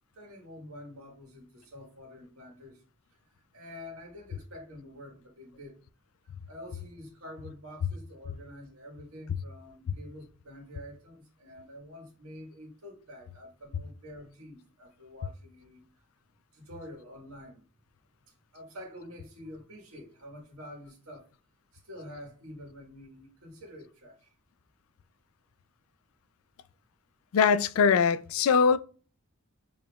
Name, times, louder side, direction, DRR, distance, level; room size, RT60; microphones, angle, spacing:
voice 1, 0.1-2.8 3.2-5.8 6.2-15.8 16.5-17.6 18.3-21.3 21.7-24.3, left 1 dB, 75° right, 1.6 m, -47 dB
voice 2, 27.3-28.8, left 6 dB, 70° left, 0.3 m, -22 dB
6.7 x 3.0 x 2.3 m
head